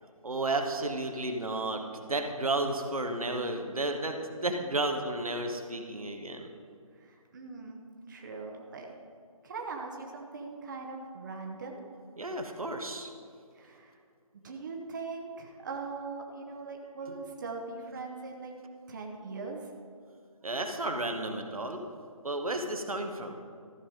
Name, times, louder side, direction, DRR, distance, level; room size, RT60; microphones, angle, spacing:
voice 1, 0.2-1.8 2.1-6.5 12.2-13.1 20.4-21.8 22.2-23.3, right 2 dB, 75° right, 4 dB, 1.2 m, -32 dB
voice 2, 6.9-7.8 8.1-9.0 9.4-11.8 13.5-14.0 14.3-18.5 18.9-19.7, right 4 dB, 35° right, 1 dB, 0.9 m, -41 dB
14.0 x 5.7 x 5.1 m, 2.3 s
figure-of-eight pair, 150°, 18 cm